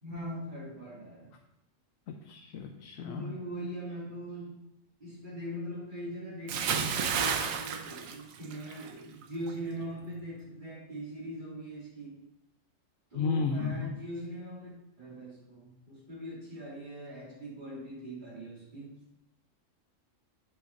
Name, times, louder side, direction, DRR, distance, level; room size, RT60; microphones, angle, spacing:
voice 1, 0.0-1.3 3.0-4.5 5.0-12.2 13.1-14.7 15.0-18.9, equal, 35° right, -8 dB, 2.9 m, -41 dB
voice 2, 2.1-3.3 13.1-13.9, left 5 dB, 80° left, 3 dB, 1.0 m, -33 dB
Bathtub (filling or washing) / Splash splatter, 6.5-8.9 9.2-9.5, right 6 dB, 85° right, 1.1 m, -31 dB
7.6 x 4.8 x 4.0 m, 0.85 s
omnidirectional pair, 1.4 m